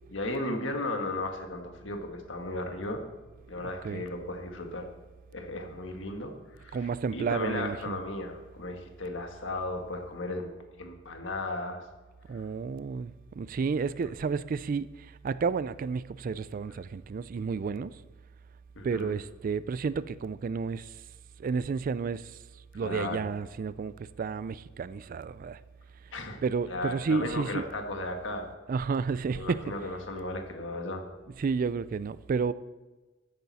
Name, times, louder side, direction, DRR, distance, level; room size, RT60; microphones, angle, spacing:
voice 1, 0.1-3.0 3.5-4.9 5.3-6.3 6.6-6.8 7.1-10.5 10.8-11.8 12.3-12.5 18.7-19.1 22.8-23.2 26.1-26.4 26.7-28.5 29.3-31.1, left 2 dB, 70° left, 1.6 m, -35 dB
voice 2, 6.7-8.0 12.3-18.0 18.8-21.0 21.4-22.4 22.7-25.6 26.4-27.7 28.7-29.6 31.4-32.5, right 5 dB, 45° right, 0.3 m, -31 dB
13.5 x 8.8 x 4.2 m
head